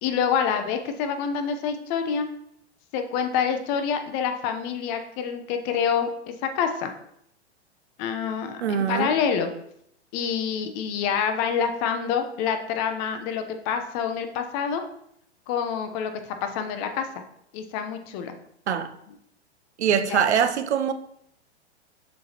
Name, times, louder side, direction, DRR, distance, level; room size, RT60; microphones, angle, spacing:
voice 1, 0.0-2.3 2.9-6.1 6.5-6.9 8.0-9.5 10.1-14.8 15.5-17.1 17.5-18.4 19.9-20.2, left 7 dB, 40° left, 7 dB, 0.9 m, -27 dB
voice 2, 8.6-9.1 18.7-18.9 19.8-20.9, right 8 dB, 75° right, 10 dB, 0.7 m, -23 dB
7.3 x 6.2 x 2.9 m, 0.73 s
hypercardioid pair, 105°, 34 cm